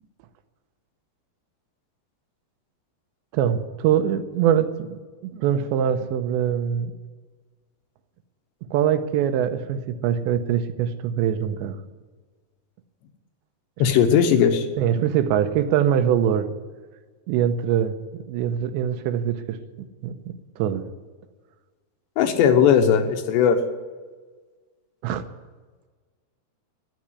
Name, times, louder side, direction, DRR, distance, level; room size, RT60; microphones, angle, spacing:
voice 1, 3.3-6.9 8.7-11.8 14.8-16.5 17.3-17.9 18.3-20.8 25.0-25.2, right 9 dB, 85° right, 9 dB, 3.0 m, -23 dB
voice 2, 13.8-14.7 22.2-23.6, left 8 dB, 80° left, 6 dB, 3.3 m, -18 dB
12.5 x 10.5 x 9.7 m, 1.4 s
omnidirectional pair, 5.1 m